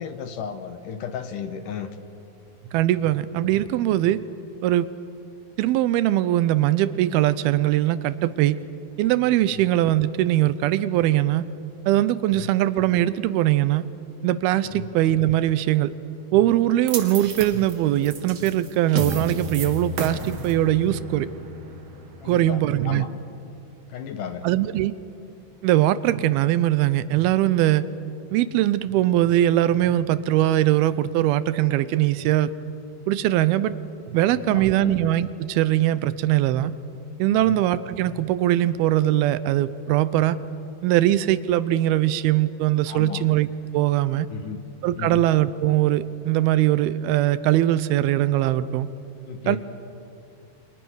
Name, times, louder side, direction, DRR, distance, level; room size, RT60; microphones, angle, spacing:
voice 1, 0.0-1.9 9.5-9.6 12.3-12.5 14.7-14.9 22.2-23.1 23.9-24.5 34.3-34.9 37.3-37.6 42.9-43.2 44.3-44.6 45.0-45.3 49.3-49.6, left 7 dB, 65° left, 9 dB, 2.5 m, -34 dB
voice 2, 2.7-4.2 4.6-4.9 5.6-8.6 9.0-11.5 11.9-13.9 14.2-15.9 16.3-21.3 22.3-23.1 24.4-24.9 25.6-27.8 28.3-32.5 33.1-33.7 34.1-36.7 37.2-40.4 40.8-43.5 43.7-44.3 44.8-48.9 49.5-49.6, right 13 dB, 85° right, 15 dB, 2.7 m, -21 dB
sound 1, 16.9-23.2, right 2 dB, 45° right, 2.9 m, -33 dB
30.0 x 26.0 x 6.4 m, 2.6 s
omnidirectional pair, 4.4 m